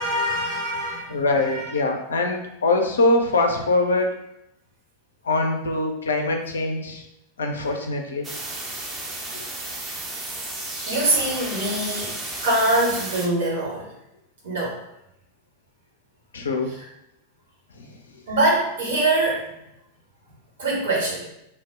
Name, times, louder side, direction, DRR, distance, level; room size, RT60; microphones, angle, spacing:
voice 1, 0.0-1.7 9.7-10.1 10.9-12.1 12.4-13.9 14.4-14.8 16.8-16.9 18.3-19.6 20.6-21.3, right 1 dB, 60° right, -4 dB, 1.0 m, -24 dB
voice 2, 1.1-4.1 5.2-7.0 7.4-8.3 9.3-9.4 11.6-11.7 16.3-16.7 17.8-17.9, left 2 dB, 70° left, 3 dB, 0.4 m, -23 dB
sound 1, 8.2-13.3, right 2 dB, 20° right, 0.5 m, -33 dB
2.2 x 2.0 x 3.4 m, 0.83 s
figure-of-eight pair, 90°, 0 cm